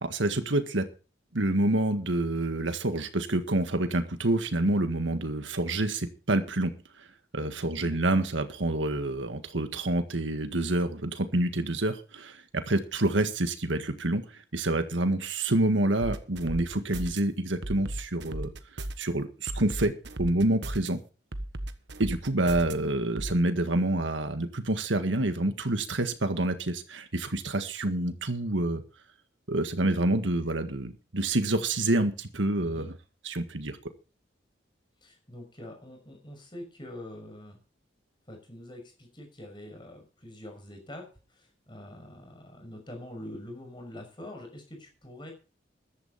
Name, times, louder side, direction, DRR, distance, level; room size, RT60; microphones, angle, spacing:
voice 1, 0.0-0.9 1.3-6.7 7.0-7.1 7.3-18.5 19.0-19.9 20.2-21.0 22.0-28.8 29.5-32.9 33.3-33.8, right 2 dB, 85° right, 8 dB, 1.7 m, -27 dB
voice 2, 7.8-8.2 32.6-32.9 35.0-37.6 38.3-45.3, left 1 dB, 25° left, 3 dB, 6.1 m, -45 dB
sound 1, 16.0-17.2 17.6-19.1 19.5-20.9 21.3-22.7 23.2-23.3, right 1 dB, 70° right, 1.4 m, -35 dB
14.5 x 12.0 x 4.2 m, 0.35 s
head